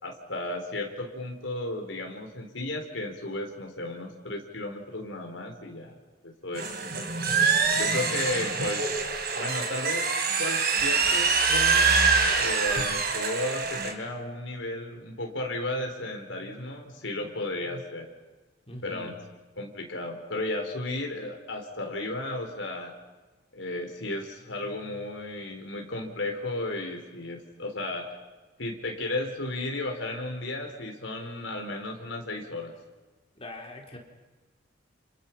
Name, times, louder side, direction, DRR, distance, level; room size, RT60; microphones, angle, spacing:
voice 1, 0.0-5.9 6.2-7.2 7.7-8.8 9.3-10.1 10.4-18.1 18.8-19.1 19.6-22.9 23.5-28.2 28.6-32.8, left 2 dB, 85° left, 2 dB, 3.8 m, -34 dB
sound 1, 6.5-13.9, right 5 dB, 60° right, 3.8 m, -25 dB
voice 2, 18.7-19.1 33.4-34.0, left 1 dB, 30° left, 1 dB, 4.5 m, -42 dB
30.0 x 29.0 x 5.8 m, 1.3 s
head